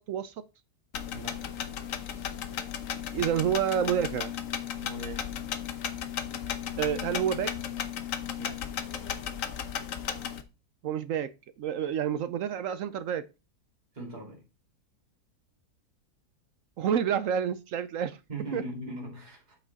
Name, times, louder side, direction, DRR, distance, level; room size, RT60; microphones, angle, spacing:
sound 1, 0.9-10.4, left 8 dB, 60° left, 1.2 m, -35 dB
voice 1, 1.1-1.5 4.8-5.3 8.4-8.7 13.9-14.4 18.3-19.6, right 1 dB, 25° right, 2.6 m, -40 dB
voice 2, 3.1-4.3 6.8-7.5 10.8-11.3 11.6-13.2 16.8-18.2 18.5-18.6, right 9 dB, 70° right, 0.8 m, -28 dB
8.1 x 5.9 x 3.9 m
omnidirectional pair, 1.7 m